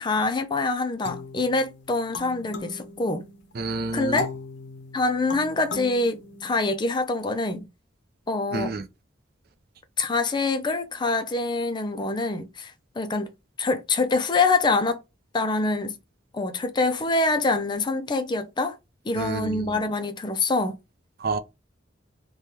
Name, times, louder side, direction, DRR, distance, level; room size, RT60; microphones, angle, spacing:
voice 1, 0.0-3.3 3.9-4.3 4.9-7.7 8.3-8.8 10.0-15.0 15.3-16.0 16.3-18.8 19.0-20.8, left 3 dB, 25° left, 0.4 m, -25 dB
sound 1, 1.0-3.5 4.2-7.0, left 3 dB, 65° left, 0.7 m, -38 dB
voice 2, 3.6-4.2 8.5-8.8 19.2-19.7 21.2-21.4, right 3 dB, 50° right, 0.4 m, -29 dB
3.3 x 2.2 x 2.8 m
head